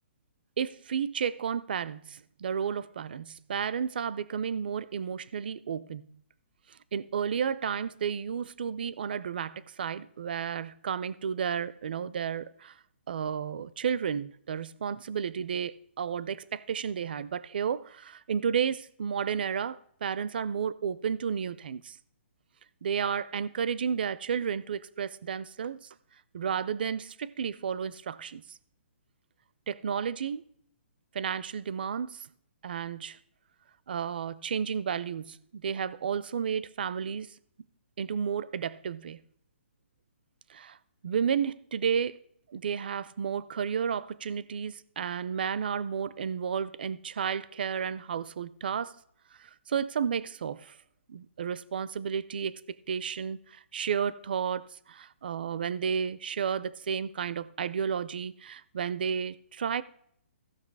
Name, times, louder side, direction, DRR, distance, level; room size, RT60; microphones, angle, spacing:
voice 1, 0.6-6.2 6.7-12.7 13.1-22.0 22.8-25.8 26.3-28.6 29.7-30.4 31.1-32.3 32.6-33.2 33.9-37.3 38.0-39.2 40.5-40.8 41.0-42.2 42.5-48.9 49.4-50.8 51.1-52.6 52.9-59.8, right 7 dB, 50° right, 0.4 m, -32 dB
15.0 x 6.0 x 4.6 m
hypercardioid pair, 175°, 7 cm